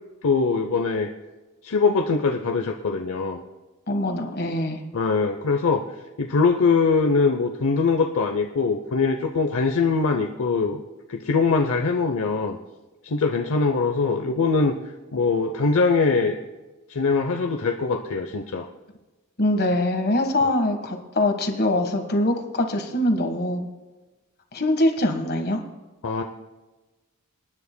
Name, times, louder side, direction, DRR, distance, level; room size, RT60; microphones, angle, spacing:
voice 1, 0.2-1.1 1.6-3.4 4.9-5.8 6.2-10.8 11.1-12.6 13.0-14.7 15.1-16.3 16.9-18.7 20.4-20.5 26.0-26.2, left 4 dB, 65° left, 4 dB, 0.7 m, -22 dB
voice 2, 3.9-4.8 19.4-23.7 24.5-25.6, left 1 dB, 45° left, 5 dB, 1.5 m, -23 dB
27.0 x 9.9 x 2.2 m, 1.2 s
head